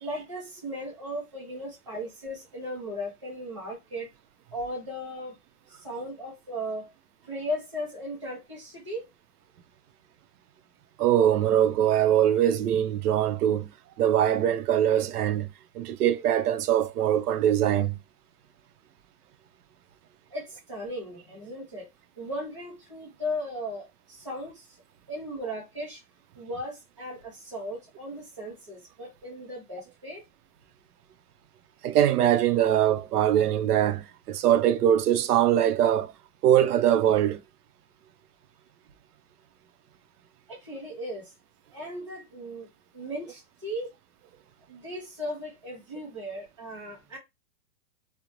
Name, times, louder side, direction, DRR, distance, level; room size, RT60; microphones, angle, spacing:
voice 1, 0.0-4.1 4.5-5.4 5.7-6.9 7.2-9.0 20.3-21.9 22.2-24.7 25.1-26.0 26.4-30.2 40.5-41.3 41.7-42.7 42.9-43.9 44.7-47.2, equal, 25° right, 0.3 m, -36 dB
voice 2, 11.0-13.7 14.0-15.5 15.7-18.0 31.8-36.1 36.4-37.4, right 10 dB, 75° right, 0.6 m, -22 dB
2.5 x 2.0 x 2.9 m
hypercardioid pair, 165°, 47 cm